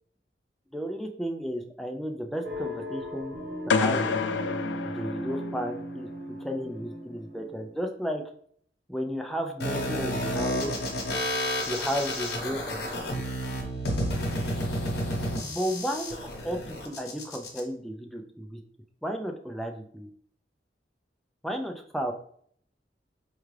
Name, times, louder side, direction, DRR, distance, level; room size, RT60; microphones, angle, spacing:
voice 1, 0.7-3.3 3.7-4.2 4.8-8.2 8.9-10.8 11.7-12.9 15.4-18.6 19.0-20.1 21.4-22.1, equal, ahead, 3 dB, 0.3 m, -33 dB
sound 1, 2.4-7.9, equal, 75° right, 0.9 m, -37 dB
sound 2, 3.7-5.8, left 5 dB, 85° left, 0.4 m, -28 dB
sound 3, 9.6-17.6, left 1 dB, 65° left, 0.9 m, -31 dB
4.5 x 2.4 x 3.2 m, 0.62 s
head